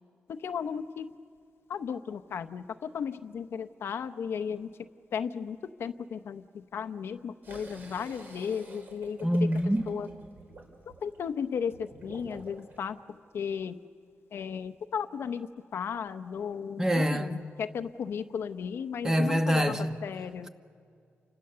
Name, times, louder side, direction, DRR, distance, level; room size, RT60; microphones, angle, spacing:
voice 1, 0.3-1.1 1.7-4.7 5.1-9.5 9.9-10.1 11.0-13.8 14.3-20.5, left 7 dB, 70° left, 0.8 m, -35 dB
sound 1, 7.4-12.8, right 3 dB, 50° right, 4.0 m, -50 dB
voice 2, 9.2-9.8 16.8-17.4 19.0-20.0, equal, 15° right, 1.2 m, -25 dB
29.5 x 25.5 x 6.8 m
wide cardioid pair, 115°, 4 cm